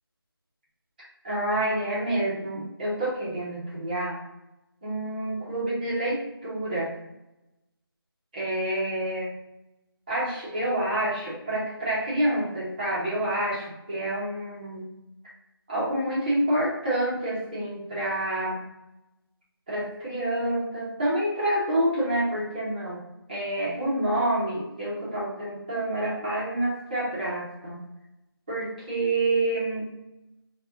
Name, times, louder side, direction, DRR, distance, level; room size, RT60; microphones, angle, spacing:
voice 1, 1.2-4.2 4.8-6.9 8.3-9.3 10.1-14.9 15.7-18.6 19.7-23.0 23.3-27.8 28.5-29.9, right 1 dB, 20° right, -7 dB, 0.9 m, -28 dB
3.3 x 2.4 x 3.6 m, 0.93 s
figure-of-eight pair, 165°, 13 cm